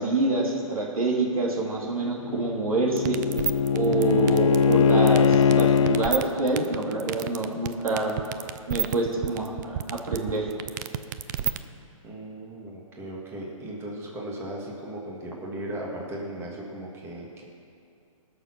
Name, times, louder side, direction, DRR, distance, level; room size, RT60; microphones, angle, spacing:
voice 1, 0.0-3.2 3.7-8.1 8.7-10.5, right 2 dB, 85° right, -1 dB, 3.0 m, -26 dB
Bowed string instrument, 2.0-6.1, left 6 dB, 65° left, 0.6 m, -21 dB
sound 1, 3.0-11.6, right 11 dB, 35° right, 0.5 m, -29 dB
voice 2, 12.0-17.4, right 1 dB, 15° right, -2 dB, 1.9 m, -37 dB
19.5 x 6.8 x 6.1 m, 2.4 s
hypercardioid pair, 145°, 18 cm